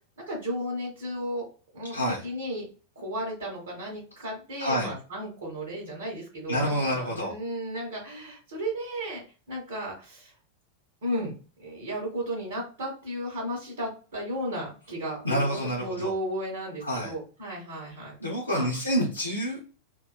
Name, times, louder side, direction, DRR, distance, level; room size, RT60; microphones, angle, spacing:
voice 1, 0.3-1.4 1.7-2.7 2.9-10.3 11.0-11.3 11.6-18.1 18.5-18.7, equal, 65° right, -3 dB, 1.0 m, -34 dB
voice 2, 1.9-2.2 4.6-4.9 6.5-7.3 15.2-16.1 16.8-17.1 18.2-19.7, equal, 85° left, -5 dB, 0.7 m, -28 dB
3.0 x 2.2 x 2.2 m, 0.35 s
figure-of-eight pair, 90°, 0 cm